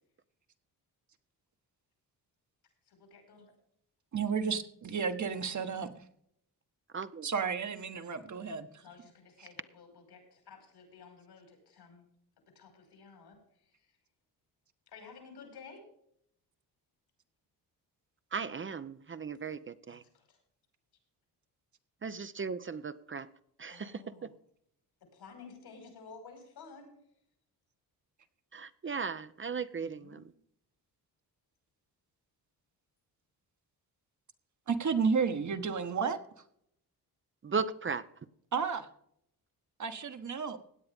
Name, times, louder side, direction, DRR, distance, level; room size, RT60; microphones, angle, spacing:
voice 1, 2.9-3.5 5.6-5.8 8.8-12.0 12.6-13.4 13.8-13.9 14.9-15.8 19.9-20.4 23.7-24.3 25.1-26.9 29.8-30.2, left 5 dB, 80° left, 5.4 m, -53 dB
voice 2, 4.1-6.0 7.2-8.8 34.7-36.2 38.5-38.9 39.8-40.6, right 5 dB, 50° right, 1.4 m, -32 dB
voice 3, 6.9-7.3 18.3-20.0 22.0-23.3 23.6-24.0 28.5-30.2 37.4-38.0, right 5 dB, 30° right, 0.7 m, -36 dB
17.0 x 9.6 x 3.5 m
cardioid pair, 90°, 38 cm